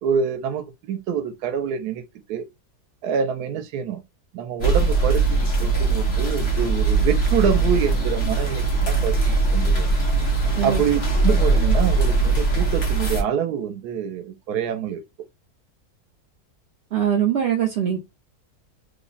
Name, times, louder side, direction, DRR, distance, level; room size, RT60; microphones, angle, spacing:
voice 1, 0.0-2.0 2.3-2.5 3.0-4.0 4.3-9.9 10.6-15.0, right 7 dB, 85° right, 1.1 m, -26 dB
sound 1, 4.6-13.2, right 3 dB, 45° left, 1.2 m, -20 dB
voice 2, 16.9-18.0, right 9 dB, 60° right, 0.7 m, -22 dB
3.4 x 2.1 x 3.8 m
omnidirectional pair, 1.6 m